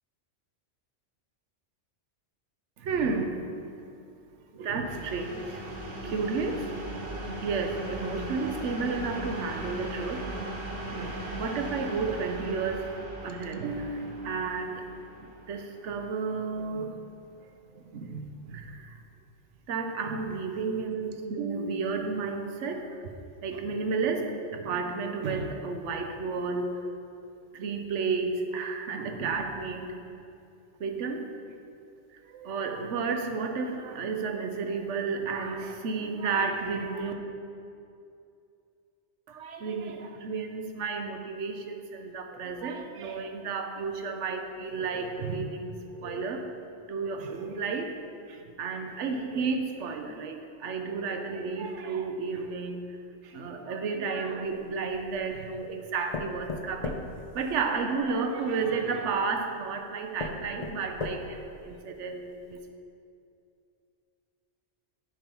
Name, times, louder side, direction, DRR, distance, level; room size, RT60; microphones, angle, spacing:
voice 1, 2.8-5.7 6.0-6.7 7.4-10.3 10.9-12.9 13.2-14.8 15.2-16.9 17.7-19.0 19.7-23.1 23.4-27.0 27.5-30.1 30.8-31.3 32.1-37.1 39.3-46.6 46.9-47.9 48.3-52.9 53.2-57.0 57.3-62.6, right 4 dB, 80° right, 5 dB, 1.0 m, -32 dB
sound 1, 4.8-16.5, right 1 dB, 65° right, 1.3 m, -38 dB
sound 2, 54.5-55.3 56.1-58.1 59.1-59.2 59.7-59.8 60.2-61.5 62.0-62.1 62.5-62.6, left 3 dB, 45° left, 0.5 m, -37 dB
9.1 x 4.4 x 5.4 m, 2.5 s
omnidirectional pair, 1.2 m